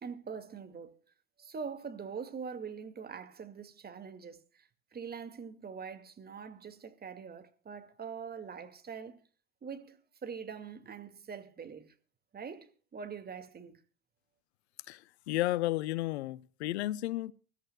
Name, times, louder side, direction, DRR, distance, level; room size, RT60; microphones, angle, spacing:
voice 1, 0.0-0.9 1.4-9.2 9.6-11.9 12.3-13.8, right 6 dB, 30° right, 2.2 m, -43 dB
voice 2, 14.9-17.3, left 16 dB, 75° left, 0.7 m, -33 dB
24.5 x 13.5 x 2.3 m
hypercardioid pair, 75°, 33 cm